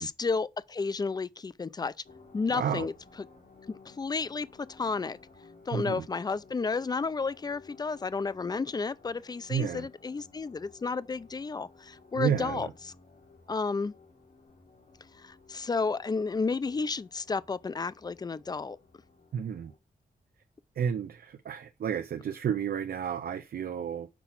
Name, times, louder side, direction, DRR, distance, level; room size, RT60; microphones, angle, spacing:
voice 1, 0.0-1.9 2.3-2.9 3.7-5.2 5.7-12.9 13.5-13.9 15.2-18.8, left 4 dB, 25° left, 0.4 m, -32 dB
sound 1, 2.0-19.8, left 4 dB, 85° left, 2.4 m, -57 dB
voice 2, 2.5-2.9 5.7-6.0 9.5-9.9 12.1-12.7 19.3-19.7 20.8-24.1, right 8 dB, 80° right, 0.6 m, -31 dB
6.0 x 4.8 x 5.8 m
wide cardioid pair, 145°, 15 cm